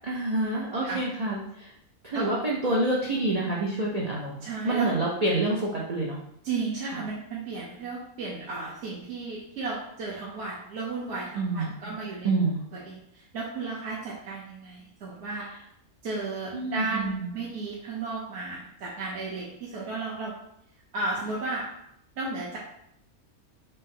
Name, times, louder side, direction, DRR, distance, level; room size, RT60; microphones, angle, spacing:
voice 1, 0.0-1.7 2.0-6.2 6.8-7.0 11.3-11.7 12.2-12.6 16.5-17.3, right 2 dB, 80° right, -4 dB, 0.3 m, -27 dB
voice 2, 4.4-4.9 6.4-12.3 12.7-15.5 16.0-20.3 20.9-21.7 22.2-22.6, right 3 dB, 55° right, -4 dB, 0.9 m, -34 dB
4.1 x 2.6 x 3.7 m, 0.75 s
omnidirectional pair, 1.5 m